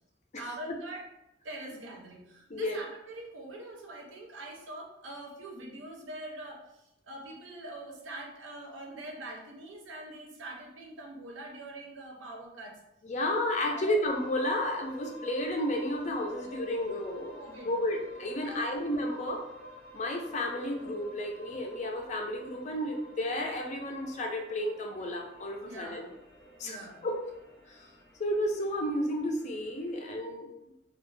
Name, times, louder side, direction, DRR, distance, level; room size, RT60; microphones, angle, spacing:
voice 1, 0.4-1.1 1.4-12.8 13.6-14.0 17.3-17.7 18.4-18.8 25.6-26.1 26.6-27.1, right 1 dB, 80° right, 0 dB, 0.6 m, -44 dB
voice 2, 13.0-17.3 17.6-19.4 19.9-26.1 26.6-27.2 27.7-27.9 28.2-30.5, left 1 dB, 40° left, 2 dB, 0.4 m, -32 dB
sound 1, 14.0-30.0, equal, ahead, 0.6 m, -50 dB
2.3 x 2.1 x 3.1 m, 0.85 s
head